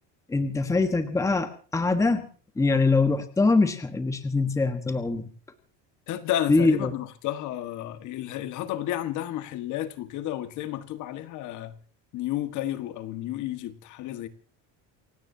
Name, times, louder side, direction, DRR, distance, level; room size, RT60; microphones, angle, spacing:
voice 1, 0.3-2.3 2.6-5.3 6.5-6.9, left 3 dB, 10° left, 1.3 m, -23 dB
voice 2, 6.1-11.7 12.1-14.3, left 12 dB, 50° left, 1.7 m, -32 dB
28.5 x 16.5 x 2.8 m
cardioid pair, 155°, 38 cm